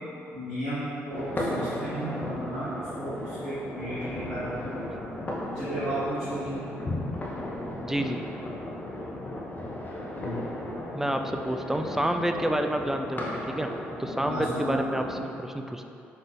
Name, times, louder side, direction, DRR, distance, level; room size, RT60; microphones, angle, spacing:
voice 1, 0.3-5.2 5.5-6.7 10.1-10.7 14.2-14.9, right 1 dB, 90° right, -19 dB, 1.4 m, -34 dB
sound 1, 1.1-15.2, left 1 dB, 30° left, 0.8 m, -35 dB
voice 2, 7.8-8.2 10.9-13.7 14.0-15.9, right 1 dB, 5° right, 5 dB, 0.3 m, -29 dB
4.9 x 3.8 x 2.5 m, 2.7 s
hypercardioid pair, 45°, 6 cm